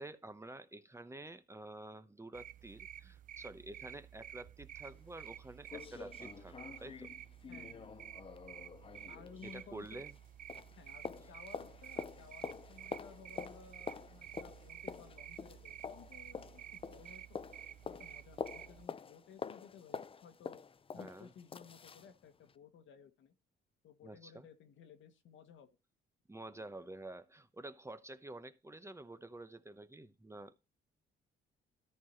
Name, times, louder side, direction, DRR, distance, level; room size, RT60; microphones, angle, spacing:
voice 1, 0.0-7.1 9.4-10.1 20.9-21.3 24.0-24.5 26.3-30.6, right 2 dB, 15° right, 0.9 m, -49 dB
sound 1, 2.3-18.9, right 10 dB, 45° right, 0.4 m, -52 dB
sound 2, 4.8-4.9 5.3-5.4 5.7-10.2 10.5-22.1 22.5-22.6, left 6 dB, 25° left, 0.5 m, -47 dB
voice 2, 7.5-8.0 9.1-10.0 10.7-17.4 17.9-20.6 20.9-23.3 23.8-25.7 26.4-26.7, left 7 dB, 75° left, 1.6 m, -57 dB
13.5 x 4.7 x 4.4 m
cardioid pair, 90°, 20 cm